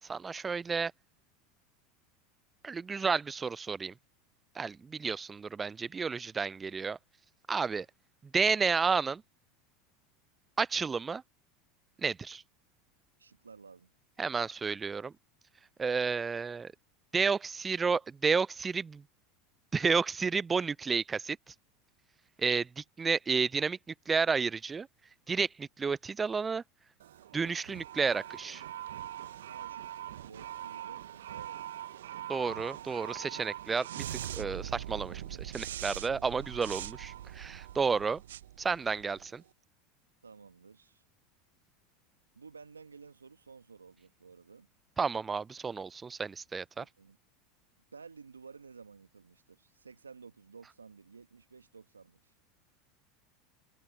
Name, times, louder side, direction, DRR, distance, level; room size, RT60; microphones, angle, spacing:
voice 1, 0.1-0.9 2.6-3.9 4.6-7.0 7.5-7.9 8.3-9.2 10.6-11.2 12.0-12.4 14.2-15.1 15.8-16.7 17.1-19.0 19.7-21.5 22.4-24.9 25.3-26.6 27.3-28.6 32.3-38.2 38.6-39.4 45.0-46.8, right 5 dB, 20° right, 0.3 m, -31 dB
voice 2, 13.2-13.9 29.5-31.8 40.2-41.0 42.3-44.7 46.8-47.2 47.9-52.3, right 5 dB, 90° right, 1.5 m, -53 dB
sound 1, 27.0-39.4, right 11 dB, 75° right, 0.6 m, -42 dB
hypercardioid pair, 80°, 0 cm